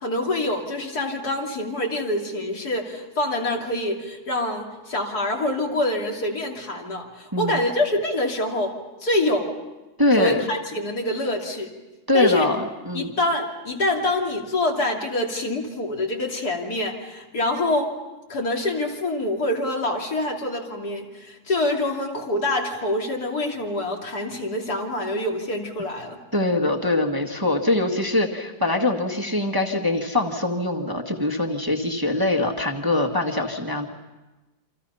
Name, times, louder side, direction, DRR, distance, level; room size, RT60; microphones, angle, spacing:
voice 1, 0.0-9.5 10.2-11.7 12.1-12.5 12.9-17.9 18.3-26.2, left 1 dB, 70° left, 0 dB, 3.5 m, -26 dB
voice 2, 7.3-7.7 10.0-10.4 12.1-13.1 26.3-33.9, left 2 dB, 15° right, 1 dB, 1.7 m, -23 dB
28.5 x 26.5 x 5.6 m, 1.1 s
omnidirectional pair, 1.7 m